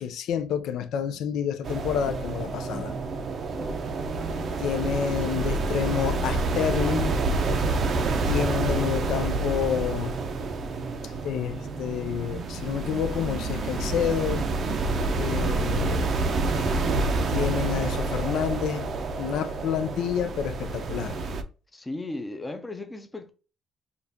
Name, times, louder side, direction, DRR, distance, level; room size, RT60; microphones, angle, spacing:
voice 1, 0.0-2.9 4.6-7.2 8.3-10.1 11.0-14.5 15.2-16.0 17.3-18.9 19.2-21.2, left 8 dB, 80° left, 0.4 m, -29 dB
sound 1, 1.6-21.4, right 3 dB, 45° right, 0.5 m, -28 dB
voice 2, 2.8-3.1 3.5-3.8 21.7-23.3, left 2 dB, 10° left, 0.5 m, -37 dB
5.2 x 2.4 x 2.7 m
cardioid pair, 150°, 0 cm